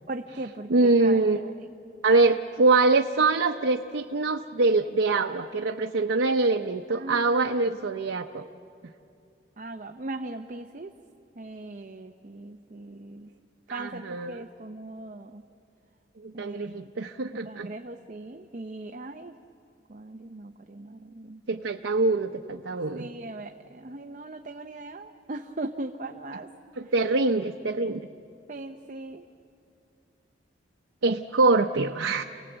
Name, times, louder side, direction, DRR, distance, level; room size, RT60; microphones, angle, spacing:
voice 1, 0.1-1.2 6.9-7.5 9.6-10.9 11.4-13.3 13.7-15.4 16.3-16.9 17.4-19.4 19.9-21.4 22.9-26.5 26.8-26.9 28.5-29.2, right 2 dB, 45° right, 5 dB, 0.7 m, -39 dB
voice 2, 0.7-1.5 2.0-8.5 13.7-14.4 16.2-17.7 21.5-23.1 26.8-28.0 31.0-32.2, right 3 dB, 90° right, 4 dB, 0.7 m, -24 dB
28.5 x 18.5 x 8.0 m, 2.7 s
head